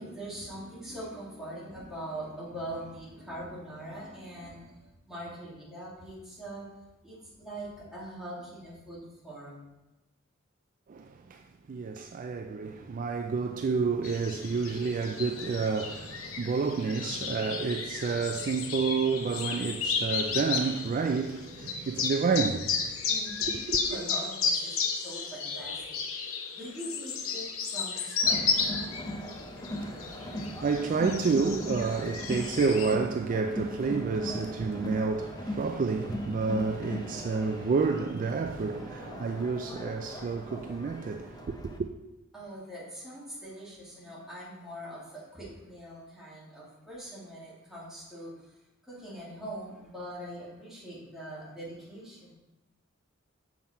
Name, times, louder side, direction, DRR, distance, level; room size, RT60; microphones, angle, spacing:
voice 1, 0.0-6.7 7.0-9.7 23.1-26.0 26.5-28.8 42.3-48.5 48.8-52.4, right 1 dB, ahead, 2.4 m, -42 dB
voice 2, 10.9-11.4 11.7-22.9 23.7-23.8 29.8-41.9, right 4 dB, 40° right, 0.3 m, -30 dB
sound 1, 14.0-33.0, left 5 dB, 85° left, 0.8 m, -33 dB
Crowd, 28.2-41.8, equal, 20° left, 0.7 m, -39 dB
7.2 x 5.8 x 4.3 m
head